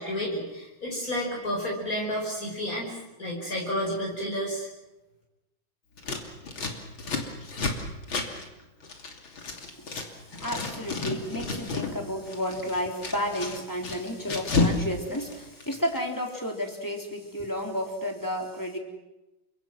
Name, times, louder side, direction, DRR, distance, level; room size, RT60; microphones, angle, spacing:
voice 1, 0.0-4.7, equal, 45° left, -2 dB, 5.9 m, -31 dB
Scissors, 6.0-10.1 10.3-11.9 12.2-14.8 15.1-16.0, left 3 dB, 75° left, 3.7 m, -31 dB
voice 2, 10.4-18.8, equal, 10° left, 1 dB, 3.9 m, -32 dB
29.5 x 25.5 x 6.1 m, 1.0 s
omnidirectional pair, 2.2 m